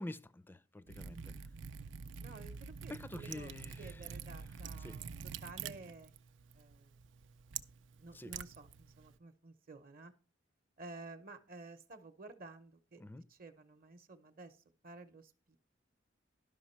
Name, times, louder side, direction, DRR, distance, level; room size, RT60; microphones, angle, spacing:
voice 1, 0.0-1.3 2.9-4.0 4.8-5.0 8.1-8.3 13.0-13.2, left 1 dB, 10° left, 0.4 m, -47 dB
Liquid, 0.9-9.2, right 7 dB, 85° right, 0.4 m, -47 dB
voice 2, 1.1-1.4 2.2-5.1 5.4-6.1 6.5-7.0 8.0-10.1 10.8-13.0 13.3-15.6, right 3 dB, 50° right, 0.8 m, -53 dB
11.5 x 5.8 x 4.3 m
head